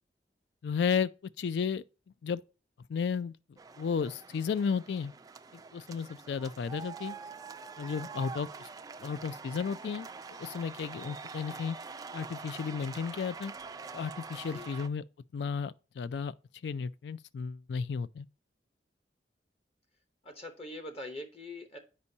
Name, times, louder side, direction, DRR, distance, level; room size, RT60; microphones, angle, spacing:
voice 1, 0.6-1.1 1.4-1.8 2.2-2.4 2.9-3.3 3.8-5.1 5.5-7.2 7.8-8.7 9.0-10.1 10.4-11.8 12.1-13.5 13.9-15.0 15.3-16.3 16.6-18.3, left 6 dB, 70° left, 0.3 m, -33 dB
sound 1, 3.6-14.9, right 5 dB, 20° right, 0.3 m, -45 dB
voice 2, 20.2-21.8, left 1 dB, 35° left, 0.9 m, -43 dB
8.3 x 5.3 x 2.7 m
head